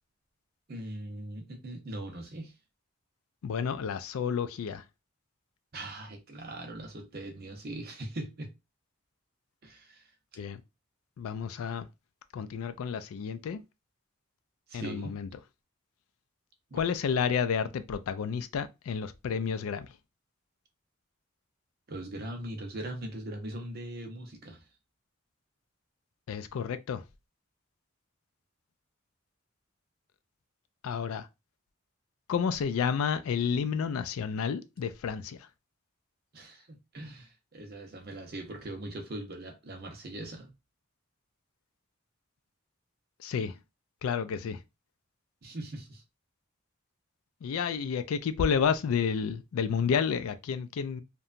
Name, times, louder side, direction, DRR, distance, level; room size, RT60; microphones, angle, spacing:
voice 1, 0.7-2.5 5.7-8.5 9.6-10.1 14.7-15.2 16.7-16.8 21.9-24.6 36.3-40.5 45.4-46.0, right 1 dB, 45° right, 0.6 m, -40 dB
voice 2, 3.4-4.8 10.4-10.6 11.2-11.9 12.3-13.6 14.7-15.3 16.7-19.9 26.3-27.0 30.8-31.3 32.3-35.5 43.2-43.6 44.0-44.6 47.4-51.0, left 6 dB, 75° left, 0.3 m, -30 dB
2.8 x 2.2 x 2.5 m
head